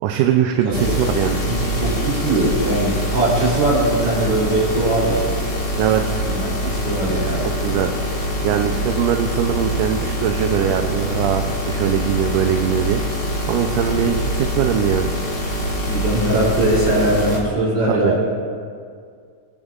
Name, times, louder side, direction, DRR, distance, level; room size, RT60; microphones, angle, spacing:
voice 1, 0.0-1.4 5.8-6.2 7.6-7.9 8.4-13.0 13.5-15.1 17.9-18.1, right 9 dB, 80° right, 5 dB, 2.1 m, -21 dB
sound 1, 0.7-17.4, equal, 35° left, 1.2 m, -24 dB
voice 2, 1.5-5.3 6.0-7.5 15.9-18.3, right 1 dB, 45° right, -6 dB, 4.0 m, -20 dB
23.0 x 8.8 x 2.4 m, 2.1 s
omnidirectional pair, 3.7 m